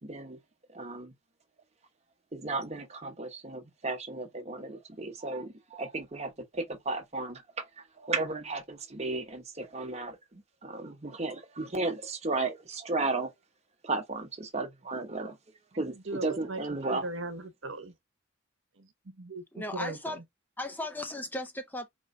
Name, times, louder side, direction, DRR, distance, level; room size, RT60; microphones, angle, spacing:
voice 1, 0.0-0.4 0.7-1.1 2.3-13.3 13.8-15.4 15.8-17.1, right 3 dB, 30° right, 0.9 m, -34 dB
voice 2, 15.7-17.9 18.8-20.2, right 2 dB, 70° right, 1.0 m, -39 dB
voice 3, 19.5-20.2 20.6-21.9, left 1 dB, 10° left, 0.4 m, -36 dB
4.4 x 3.0 x 2.6 m
head